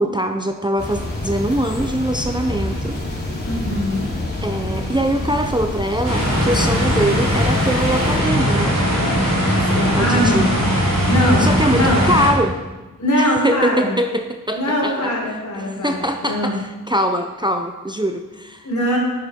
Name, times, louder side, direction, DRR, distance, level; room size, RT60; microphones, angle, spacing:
voice 1, 0.0-3.0 4.4-8.8 9.9-10.6 11.4-12.6 13.2-15.1 15.6-18.7, right 1 dB, 15° right, 5 dB, 0.6 m, -22 dB
sound 1, 0.8-8.2, left 1 dB, 30° left, 3.6 m, -27 dB
voice 2, 3.5-4.1 9.7-10.4 11.1-12.0 13.0-13.9 14.5-16.5 18.6-19.0, equal, 55° left, -3 dB, 4.3 m, -21 dB
sound 2, 6.0-12.3, equal, 50° right, 4.6 m, -19 dB
9.9 x 9.8 x 5.3 m, 1.1 s
wide cardioid pair, 100°, 34 cm